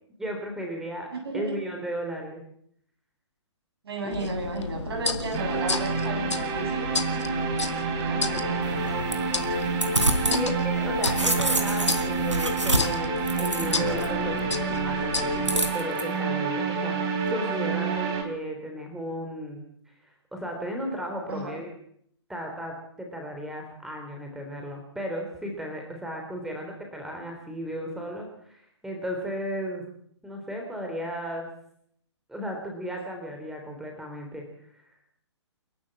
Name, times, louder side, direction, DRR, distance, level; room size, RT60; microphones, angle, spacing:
voice 1, 0.2-1.1 1.3-2.4 4.0-4.2 10.2-19.6 20.3-21.7 22.3-29.8 30.2-31.5 32.3-34.5 34.7-34.8, equal, 5° right, 2 dB, 3.7 m, -35 dB
voice 2, 1.1-1.5 3.8-6.9 8.1-8.8 21.3-21.6, right 2 dB, 55° right, 4 dB, 7.6 m, -34 dB
sound 1, 4.1-15.7, left 3 dB, 70° left, 2.2 m, -32 dB
sound 2, 5.3-18.2, right 4 dB, 25° right, 3.5 m, -28 dB
sound 3, 8.6-10.4 10.7-14.1 15.5-16.0, right 1 dB, 80° right, 3.6 m, -27 dB
29.0 x 12.0 x 7.7 m, 0.68 s
figure-of-eight pair, 130°, 15 cm